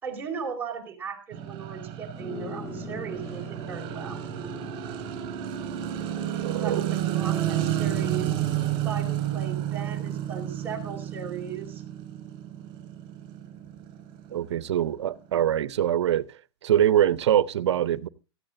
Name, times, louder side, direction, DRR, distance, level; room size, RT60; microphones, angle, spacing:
voice 1, 0.0-4.2 6.6-8.3 8.8-11.8, right 6 dB, 10° right, 4.8 m, -37 dB
sound 1, 1.3-15.5, right 11 dB, 35° right, 4.7 m, -31 dB
sound 2, 2.1-11.7, left 3 dB, 20° left, 1.8 m, -46 dB
voice 2, 6.4-6.8 14.3-16.3 16.6-18.1, right 10 dB, 75° right, 0.8 m, -23 dB
18.0 x 13.5 x 2.6 m
hypercardioid pair, 135°, 15 cm